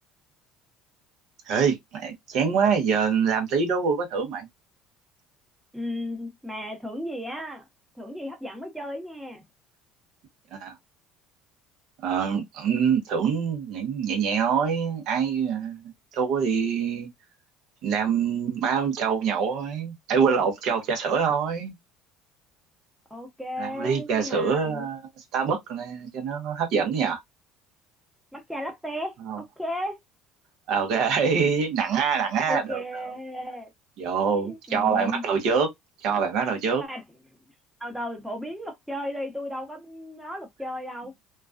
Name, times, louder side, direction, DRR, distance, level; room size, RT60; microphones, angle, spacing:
voice 1, 1.5-4.5 10.5-10.8 12.0-15.8 16.1-17.1 17.8-21.7 23.6-25.0 25.3-27.2 29.3-29.4 30.7-33.1 34.0-35.7 36.0-36.8, right 6 dB, 65° right, 0.8 m, -25 dB
voice 2, 5.7-7.7 7.9-9.4 23.1-24.9 28.3-30.0 32.4-33.7 34.2-35.2 36.7-37.0 37.8-41.1, left 1 dB, 5° right, 0.9 m, -35 dB
2.3 x 2.2 x 2.4 m
supercardioid pair, 95°, 0 cm